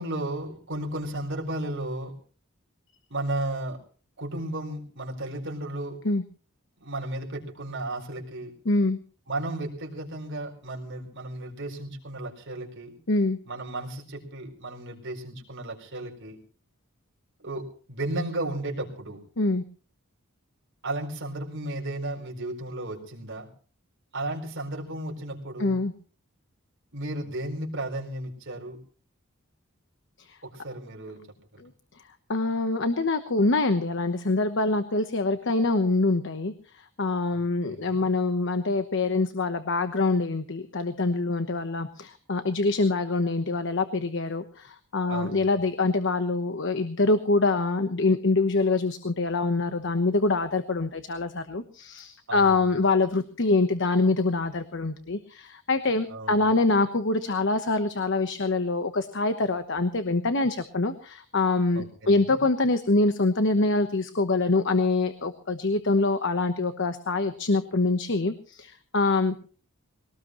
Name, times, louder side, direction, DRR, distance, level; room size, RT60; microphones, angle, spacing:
voice 1, 0.0-2.1 3.1-3.8 4.2-6.0 6.8-8.5 9.3-13.0 13.4-16.4 17.4-19.2 20.8-23.5 24.1-25.8 26.9-28.8 30.4-31.2 31.5-31.6 37.3-38.0 45.1-45.5 52.3-52.7 56.1-56.5 61.7-62.4, right 1 dB, 60° right, 0 dB, 4.4 m, -34 dB
voice 2, 8.6-9.0 13.1-13.4 19.4-19.6 25.6-25.9 31.6-31.7 32.3-36.5 37.0-69.3, left 3 dB, 60° left, 9 dB, 1.1 m, -25 dB
21.5 x 18.5 x 3.1 m, 0.41 s
head